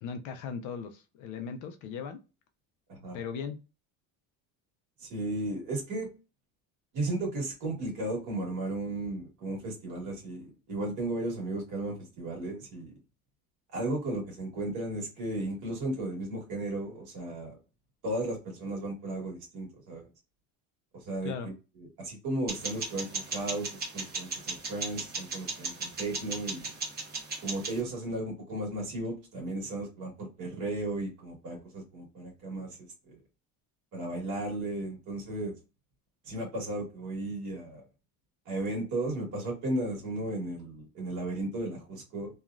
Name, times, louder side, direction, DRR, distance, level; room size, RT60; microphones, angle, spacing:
voice 1, 0.0-2.2 3.1-3.6 21.2-21.5, left 6 dB, 55° left, 0.5 m, -38 dB
voice 2, 5.0-6.1 6.9-12.9 13.7-17.6 18.0-20.1 20.9-21.5 22.0-26.7 27.4-32.8 33.1-33.2 33.9-35.5 36.2-37.8 38.4-42.3, right 2 dB, 50° right, 1.5 m, -35 dB
sound 1, 22.5-27.8, right 4 dB, 25° right, 0.9 m, -37 dB
2.9 x 2.3 x 2.4 m
cardioid pair, 170°, 37 cm